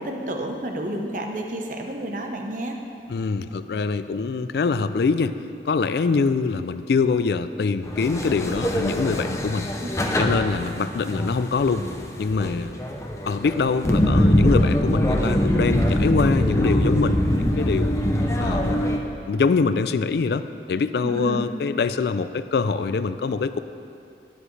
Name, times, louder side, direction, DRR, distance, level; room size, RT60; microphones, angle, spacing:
voice 1, 0.0-2.8 9.8-9.9 21.0-21.4, right 1 dB, 45° right, 3 dB, 0.9 m, -30 dB
voice 2, 3.1-5.4 5.7-9.7 10.2-11.9 12.2-12.8 13.2-18.0 18.4-18.8 19.3-20.4 20.7-23.6, left 4 dB, 65° left, 12 dB, 0.3 m, -24 dB
sound 1, 7.9-19.0, equal, 15° left, 0.6 m, -23 dB
12.5 x 10.5 x 3.3 m, 2.5 s
head